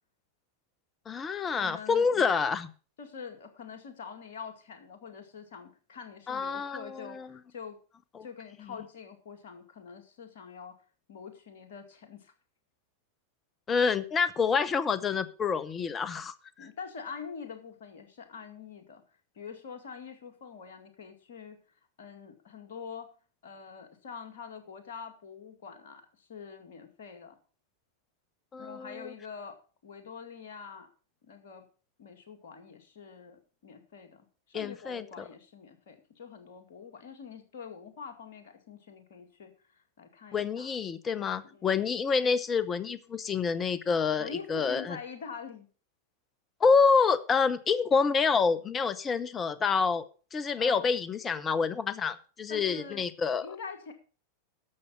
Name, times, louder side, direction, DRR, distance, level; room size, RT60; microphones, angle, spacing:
voice 1, 1.1-2.7 6.3-7.4 8.1-8.2 8.6-8.7 13.7-16.7 28.5-29.1 34.5-35.2 40.3-45.0 46.6-50.0 50.3-53.5, left 5 dB, 20° left, 16 dB, 0.8 m, -27 dB
voice 2, 1.6-2.3 3.0-7.8 8.2-10.7 11.1-12.3 16.6-19.0 19.4-21.6 22.0-23.1 23.4-27.4 28.6-30.9 31.2-31.7 32.0-40.7 41.2-41.7 44.2-45.7 50.6-50.9 52.5-53.0 53.4-53.9, left 6 dB, 55° left, 6 dB, 2.1 m, -45 dB
12.0 x 7.0 x 5.2 m, 0.37 s
figure-of-eight pair, 90°, 0 cm